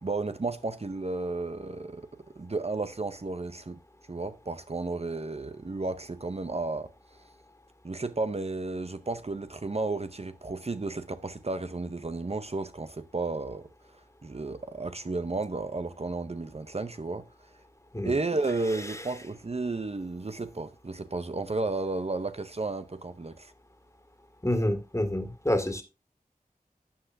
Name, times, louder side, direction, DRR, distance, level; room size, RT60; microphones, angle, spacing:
voice 1, 0.0-3.8 4.1-6.9 7.8-17.5 18.0-23.5, right 3 dB, 45° right, 0.6 m, -33 dB
voice 2, 24.4-25.8, left 1 dB, 20° left, 1.9 m, -27 dB
12.0 x 7.8 x 2.6 m
wide cardioid pair, 50°, 15 cm